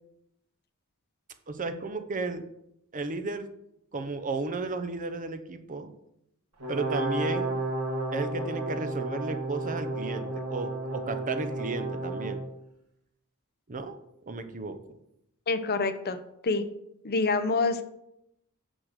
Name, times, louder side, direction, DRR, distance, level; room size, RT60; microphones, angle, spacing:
voice 1, 1.5-2.4 2.9-3.5 3.9-5.9 6.7-7.6 8.1-12.4 13.7-14.0 14.3-14.9, right 3 dB, 35° right, 8 dB, 0.7 m, -34 dB
Brass instrument, 6.6-12.4, right 2 dB, 80° right, 2.2 m, -32 dB
voice 2, 15.5-16.6 17.0-17.8, left 3 dB, 45° left, 10 dB, 0.7 m, -27 dB
6.4 x 6.2 x 6.6 m, 0.80 s
head